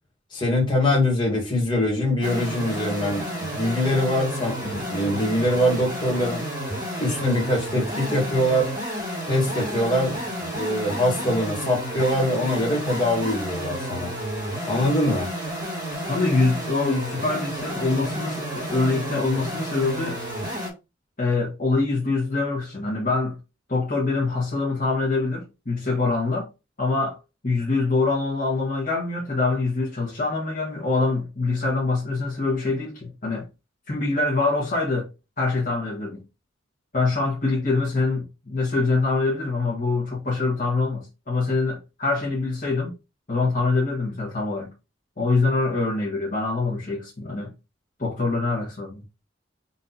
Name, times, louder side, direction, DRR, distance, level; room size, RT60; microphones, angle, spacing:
voice 1, 0.3-6.5 7.0-8.7 9.2-14.1 14.6-15.3, left 1 dB, 25° left, 1.7 m, -23 dB
sound 1, 2.2-20.7, equal, 20° right, 1.6 m, -31 dB
voice 2, 16.1-20.2 21.2-23.4 23.7-26.5 26.8-27.2 27.4-33.5 33.9-35.1 35.4-36.2 36.9-42.9 43.3-44.7 45.2-47.5 48.0-49.0, left 3 dB, 40° left, 1.2 m, -24 dB
4.2 x 2.8 x 3.8 m
head